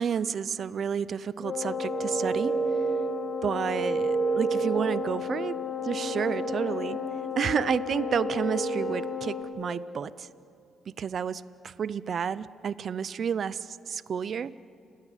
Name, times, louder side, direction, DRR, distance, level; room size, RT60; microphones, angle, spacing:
voice 1, 0.0-2.6 3.4-5.5 5.8-7.0 7.4-10.3 11.0-14.5, right 7 dB, 55° right, 17 dB, 0.6 m, -30 dB
Wind instrument woodwind instrument, 1.4-9.6, left 9 dB, 60° left, 3.0 m, -35 dB
sound 1, 1.5-9.4, right 5 dB, 30° right, 2.5 m, -31 dB
29.5 x 17.0 x 10.0 m, 2.5 s
cardioid pair, 95°, 0 cm